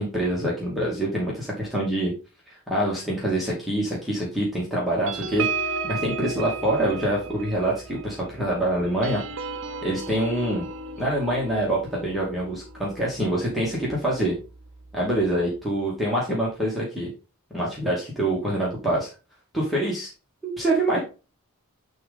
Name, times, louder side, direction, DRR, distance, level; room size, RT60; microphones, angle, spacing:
voice 1, 0.0-2.1 2.5-9.2 9.8-10.6 11.0-14.3 14.9-17.1 17.5-19.1 19.5-20.1 20.4-21.0, right 1 dB, ahead, -6 dB, 2.5 m, -25 dB
sound 1, 5.1-14.0 14.4-14.6 14.9-15.2, right 4 dB, 60° right, 0.9 m, -34 dB
10.5 x 4.1 x 3.8 m, 0.31 s
head